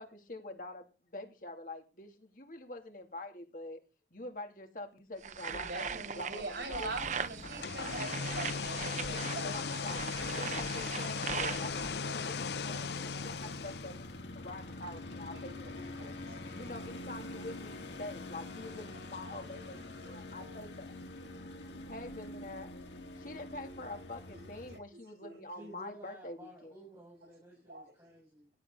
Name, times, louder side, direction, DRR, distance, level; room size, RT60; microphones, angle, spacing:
voice 1, 0.0-3.8 4.1-7.0 9.1-16.2 16.5-19.8 20.0-21.4 21.9-22.7 23.2-26.7, left 2 dB, 50° left, 4 dB, 2.9 m, -46 dB
sound 1, 5.2-12.0, right 6 dB, 45° right, 0.8 m, -40 dB
voice 2, 5.5-9.6 12.0-12.1 12.7-13.2 15.5-15.6 16.0-16.4 19.2-19.6 20.0-20.2 24.7-24.8 25.2-25.3 27.7-27.8, right 2 dB, 70° right, 3 dB, 6.2 m, -43 dB
sound 2, 6.8-24.8, left 2 dB, 85° left, 2.5 m, -47 dB
sound 3, 7.4-14.2, left 5 dB, 70° left, 0.6 m, -37 dB
voice 3, 25.5-28.5, right 1 dB, 20° right, -5 dB, 6.8 m, -53 dB
17.0 x 11.0 x 4.0 m, 0.30 s
head